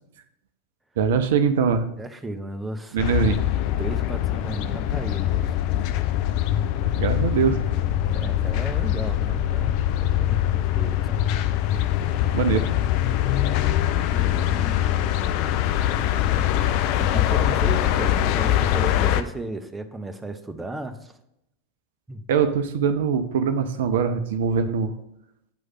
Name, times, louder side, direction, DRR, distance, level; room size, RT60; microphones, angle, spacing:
voice 1, 1.0-1.9 2.9-3.4 7.0-7.6 12.3-12.7 22.3-24.9, right 6 dB, 55° right, 9 dB, 0.4 m, -22 dB
voice 2, 2.0-3.0 3.8-5.5 6.8-6.9 8.0-11.2 12.3-12.8 13.9-15.2 17.0-21.1 22.1-22.2, right 2 dB, 10° right, 8 dB, 0.6 m, -35 dB
sound 1, 3.0-19.2, left 12 dB, 45° left, 0.4 m, -23 dB
9.0 x 3.2 x 5.6 m, 0.81 s
figure-of-eight pair, 90°, 0 cm